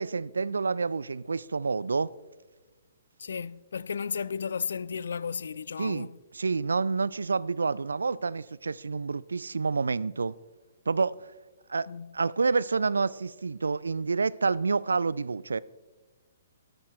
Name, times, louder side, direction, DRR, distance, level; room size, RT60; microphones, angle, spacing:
voice 1, 0.0-2.1 5.8-6.1 6.3-10.3 10.9-11.2 11.7-11.9 12.1-15.6, right 4 dB, 75° right, 0.3 m, -28 dB
voice 2, 3.2-6.2 11.9-12.1, left 6 dB, 65° left, 0.4 m, -34 dB
13.0 x 12.5 x 3.2 m
figure-of-eight pair, 125°, 0 cm